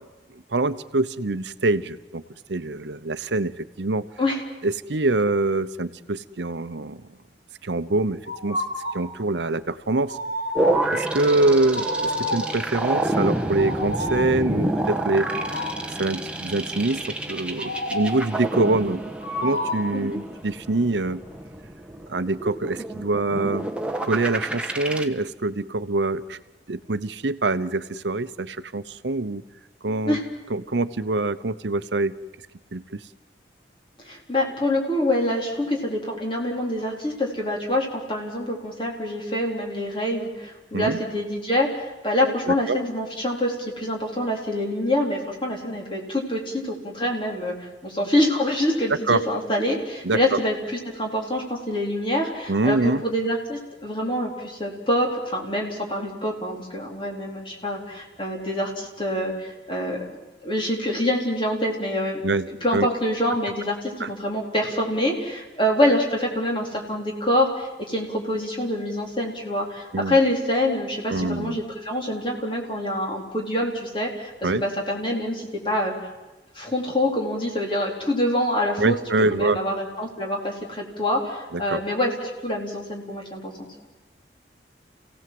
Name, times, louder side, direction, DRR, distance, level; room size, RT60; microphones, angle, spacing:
voice 1, 0.5-2.2 2.5-4.1 4.6-7.0 7.6-8.6 8.9-10.2 10.9-15.4 16.0-19.0 19.4-21.2 22.1-23.7 24.0-26.4 26.7-29.4 29.8-30.2 30.5-32.2 32.7-33.1 40.7-41.0 42.5-42.8 48.9-49.2 50.0-50.4 52.5-53.0 62.2-62.9 64.0-64.1 69.9-70.2 71.1-71.6 74.4-74.6 78.8-79.6 81.5-81.8, right 2 dB, 80° right, 12 dB, 0.9 m, -25 dB
sound 1, 8.3-9.1 10.1-11.0 11.7-12.6 13.5-14.4 15.2-15.9 17.6-18.3 19.2-20.0, left 1 dB, 90° left, 7.2 m, -29 dB
sound 2, 10.5-25.0, right 1 dB, 5° right, 1.3 m, -29 dB
voice 2, 34.0-50.6 50.9-60.2 60.4-62.2 62.5-75.9 76.5-79.0 79.3-83.7, left 1 dB, 30° left, 0 dB, 4.1 m, -26 dB
29.0 x 17.0 x 7.8 m, 1.1 s
head